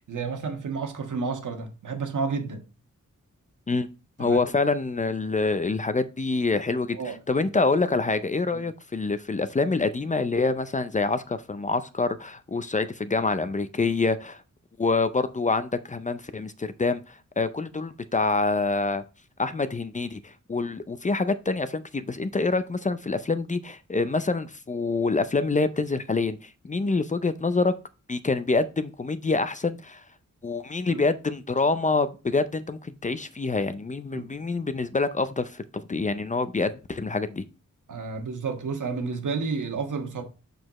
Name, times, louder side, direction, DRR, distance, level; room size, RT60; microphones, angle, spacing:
voice 1, 0.1-2.6 4.2-4.4 6.9-7.5 8.5-8.7 30.9-31.0 34.1-34.3 37.9-40.2, right 4 dB, 85° right, 1.6 m, -31 dB
voice 2, 4.2-14.4 14.8-19.0 19.4-27.7 28.1-30.0 30.4-37.4, left 3 dB, 25° left, 0.5 m, -26 dB
6.7 x 6.4 x 3.0 m
wide cardioid pair, 145°, 30 cm